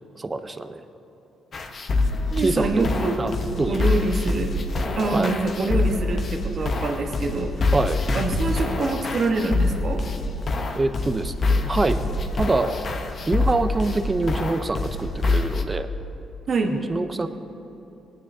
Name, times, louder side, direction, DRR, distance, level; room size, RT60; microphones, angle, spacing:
voice 1, 0.2-0.8 2.4-2.9 3.2-4.0 5.1-5.3 7.7-8.0 10.7-12.7 13.3-15.9 16.7-17.3, right 3 dB, 25° right, 9 dB, 0.6 m, -25 dB
sound 1, 1.5-15.6, left 3 dB, 45° left, 0.8 m, -25 dB
voice 2, 2.3-3.2 3.7-4.5 5.0-7.7 8.1-10.0 16.5-16.8, right 3 dB, 50° right, 3 dB, 1.2 m, -25 dB
19.5 x 9.5 x 2.7 m, 3.0 s
cardioid pair, 90°, 0 cm